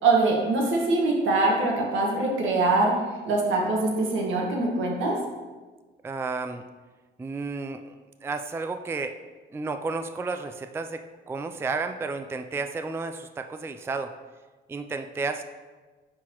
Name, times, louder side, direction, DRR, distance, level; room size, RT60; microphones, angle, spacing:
voice 1, 0.0-2.9 3.3-5.2, right 2 dB, 80° right, -1 dB, 1.5 m, -23 dB
voice 2, 6.0-6.6 7.2-7.9 8.2-9.2 9.5-14.1 14.7-15.4, right 4 dB, 10° right, 8 dB, 0.3 m, -32 dB
9.5 x 4.0 x 3.0 m, 1.3 s
cardioid pair, 90°, 20 cm